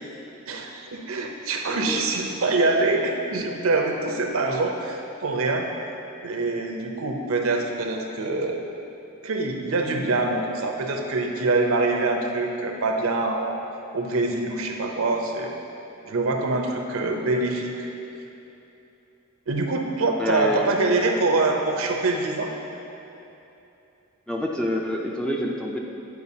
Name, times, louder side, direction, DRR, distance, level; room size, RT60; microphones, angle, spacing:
voice 1, 0.5-5.7 6.2-8.7 9.2-13.5 13.9-15.5 16.1-17.9 19.5-22.5, right 3 dB, 70° right, 2 dB, 0.6 m, -25 dB
voice 2, 1.7-2.0 20.2-20.8 24.3-25.8, left 1 dB, 5° left, -1 dB, 0.4 m, -27 dB
9.4 x 4.6 x 2.8 m, 2.9 s
head